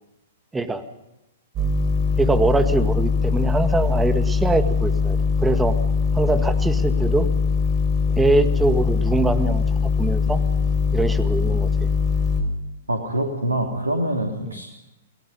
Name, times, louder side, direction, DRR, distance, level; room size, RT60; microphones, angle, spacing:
sound 1, 1.6-12.4, left 5 dB, 25° right, 5.9 m, -21 dB
voice 1, 2.2-5.8 6.1-7.3 8.1-9.6 10.0-10.4 10.9-11.9 14.4-14.5, right 3 dB, 10° right, 10 dB, 1.8 m, -23 dB
voice 2, 12.9-14.7, right 1 dB, 80° right, 2 dB, 3.1 m, -25 dB
29.0 x 19.5 x 5.3 m, 0.92 s
figure-of-eight pair, 110°, 0 cm